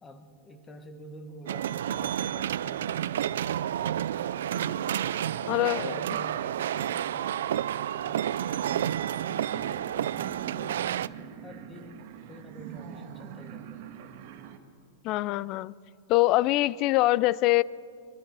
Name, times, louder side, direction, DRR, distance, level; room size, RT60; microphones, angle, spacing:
voice 1, 0.0-3.8 4.5-7.4 8.0-10.8 11.4-13.9, left 1 dB, 15° left, 7 dB, 1.4 m, -48 dB
sound 1, 1.5-11.1, right 10 dB, 80° right, 0.4 m, -30 dB
voice 2, 5.5-6.0 15.0-15.7 16.1-17.6, left 18 dB, 40° left, 22 dB, 0.3 m, -24 dB
sound 2, 9.5-14.6, right 8 dB, 55° right, 1.5 m, -43 dB
23.0 x 13.0 x 4.8 m, 2.3 s
supercardioid pair, 150°, 0 cm